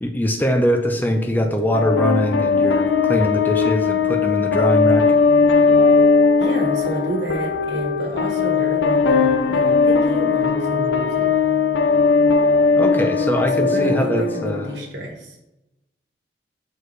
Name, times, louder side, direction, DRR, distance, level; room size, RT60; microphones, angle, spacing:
voice 1, 0.0-5.0 12.8-14.7, equal, 10° left, 5 dB, 0.6 m, -22 dB
sound 1, 1.0-13.3, right 4 dB, 45° right, 0.4 m, -35 dB
sound 2, 1.7-14.8, left 5 dB, 85° left, 0.5 m, -18 dB
voice 2, 6.4-11.3 13.6-15.5, right 1 dB, 75° right, 1 dB, 1.7 m, -29 dB
6.4 x 4.7 x 3.2 m, 0.90 s
head